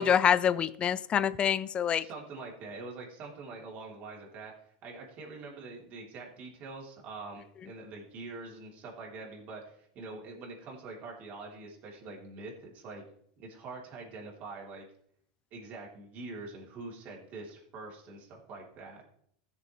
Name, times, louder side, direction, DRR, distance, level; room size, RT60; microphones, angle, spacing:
voice 1, 0.0-2.1, left 8 dB, 30° left, 17 dB, 0.4 m, -26 dB
voice 2, 2.0-4.5 4.8-13.0 13.4-14.9 15.5-19.0, right 3 dB, 45° right, -1 dB, 3.3 m, -44 dB
15.5 x 6.9 x 3.2 m, 0.68 s
supercardioid pair, 120°, 4 cm